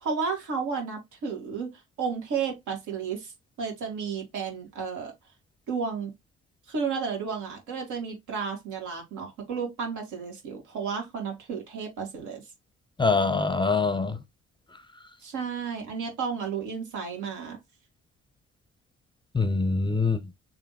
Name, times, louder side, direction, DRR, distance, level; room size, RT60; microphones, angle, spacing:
voice 1, 0.0-3.3 3.6-5.1 5.7-6.1 6.7-12.4 15.2-17.6, right 5 dB, 80° right, 1.9 m, -32 dB
voice 2, 13.0-14.2 19.3-20.2, left 4 dB, 15° left, 0.5 m, -24 dB
3.3 x 2.7 x 4.0 m
cardioid pair, 90°, 30 cm